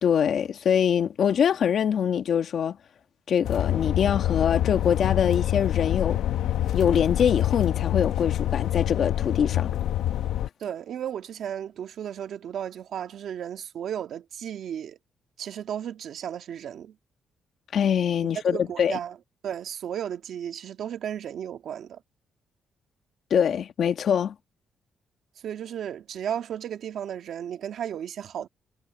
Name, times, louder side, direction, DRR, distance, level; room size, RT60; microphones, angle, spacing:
voice 1, 0.0-2.8 3.3-6.2 6.7-9.7 17.7-19.0 23.3-24.3, left 8 dB, 65° left, 1.4 m, -24 dB
sound 1, 3.4-10.5, left 12 dB, 90° left, 1.1 m, -26 dB
voice 2, 10.6-15.0 15.4-16.9 18.5-19.2 19.4-22.0 25.4-28.5, right 9 dB, 70° right, 1.7 m, -34 dB
cardioid pair, 95°, 0 cm